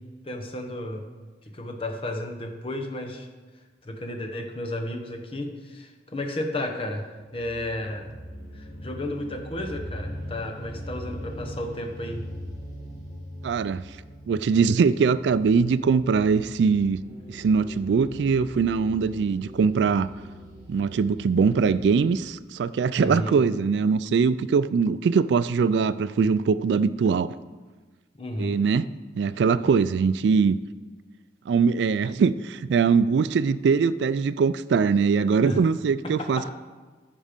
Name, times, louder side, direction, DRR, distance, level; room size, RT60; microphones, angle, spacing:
voice 1, 0.2-1.0 1.5-3.3 3.8-8.1 8.5-12.2 23.0-23.4 28.2-28.6 35.5-35.6 36.0-36.5, left 1 dB, 30° left, 3 dB, 1.1 m, -33 dB
sound 1, 7.3-22.0, equal, 20° right, 3.6 m, -41 dB
voice 2, 13.4-13.8 14.3-17.0 17.3-20.1 20.7-27.3 28.4-28.9 29.2-30.6 31.5-36.5, right 5 dB, 70° right, 16 dB, 0.3 m, -22 dB
13.5 x 5.4 x 5.2 m, 1.4 s
head